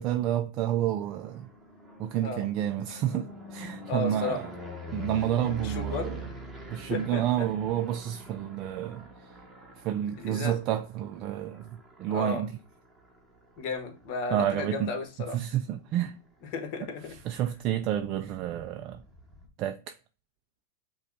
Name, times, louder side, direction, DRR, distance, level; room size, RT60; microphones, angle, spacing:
voice 1, 0.0-1.5 2.0-4.5 4.9-6.3 6.7-9.1 9.8-12.5 14.3-14.9 15.3-16.2 17.2-19.0 19.6-19.9, right 11 dB, 40° right, 0.4 m, -30 dB
sound 1, 0.8-14.8 15.3-15.8 16.0-16.1 16.4-16.5 16.7-19.5, right 1 dB, 5° right, 1.1 m, -43 dB
voice 2, 2.1-2.4 3.9-4.4 5.6-6.2 6.9-7.5 10.2-10.6 12.1-12.4 13.6-15.4 16.5-17.2, left 4 dB, 50° left, 1.3 m, -34 dB
5.6 x 2.3 x 3.9 m
hypercardioid pair, 130°, 0 cm